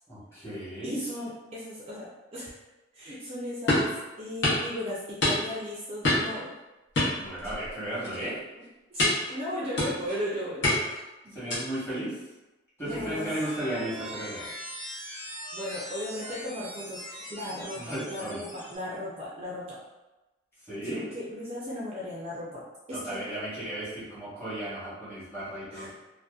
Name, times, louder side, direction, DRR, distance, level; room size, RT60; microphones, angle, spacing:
voice 1, 0.1-1.0 7.2-8.4 11.3-12.1 12.8-14.5 17.7-18.4 20.7-21.0 22.9-25.9, right 1 dB, 15° left, -11 dB, 1.0 m, -35 dB
voice 2, 0.8-2.5 2.9-3.9 4.2-6.5 7.4-7.5 8.6-11.0 11.2-11.4 12.8-13.3 15.0-15.2 15.5-19.8 20.8-22.6 22.9-23.2 25.7-25.9, left 1 dB, 30° right, -6 dB, 0.4 m, -36 dB
sound 1, 3.7-3.9 4.4-4.7 5.2-5.6 6.0-6.4 6.9-7.7 8.0-8.3 9.0-9.3 9.8-10.2 10.6-11.0 11.5-11.8, left 1 dB, 70° left, 0.8 m, -26 dB
sound 2, 12.8-18.8, equal, 35° left, 0.9 m, -41 dB
2.6 x 2.1 x 2.3 m, 1.1 s
head